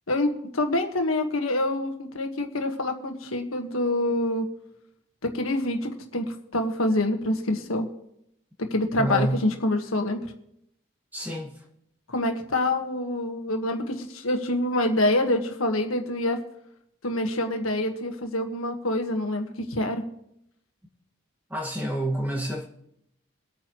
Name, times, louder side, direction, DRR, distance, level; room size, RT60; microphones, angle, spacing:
voice 1, 0.1-4.5 5.2-7.9 8.6-10.3 12.1-16.4 17.0-20.0, left 1 dB, 85° left, 5 dB, 1.5 m, -26 dB
voice 2, 9.0-9.4 11.1-11.5 21.5-22.7, right 1 dB, 10° right, -1 dB, 1.8 m, -28 dB
24.0 x 9.0 x 3.1 m, 0.78 s
head